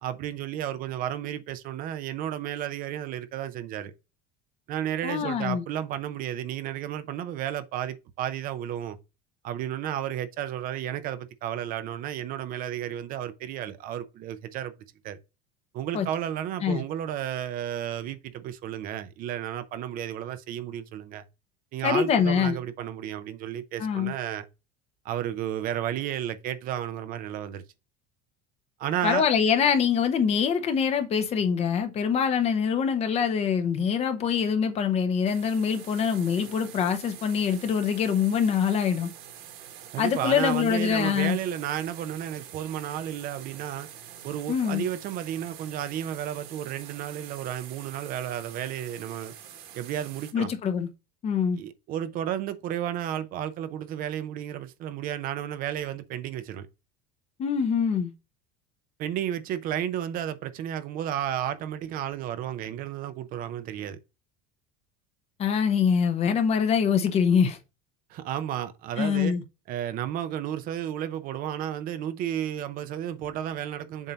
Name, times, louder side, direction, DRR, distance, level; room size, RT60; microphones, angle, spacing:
voice 1, 0.0-3.9 4.7-9.0 9.4-14.7 15.0-15.2 15.7-21.2 21.7-24.5 25.0-27.6 28.8-29.3 39.9-43.9 44.2-49.3 49.7-50.5 51.6-56.7 59.0-64.0 68.1-69.3 69.7-74.1, right 11 dB, 45° right, 0.6 m, -32 dB
voice 2, 5.0-5.6 15.9-16.1 16.6-16.8 21.8-22.6 23.8-24.1 29.0-39.1 40.0-41.4 44.5-44.8 50.3-50.9 51.2-51.6 57.4-58.1 65.4-67.6 69.0-69.4, left 7 dB, 30° left, 0.8 m, -24 dB
sound 1, 35.3-50.3, right 10 dB, 65° right, 1.6 m, -46 dB
7.2 x 2.7 x 5.5 m
cardioid pair, 150°, 20 cm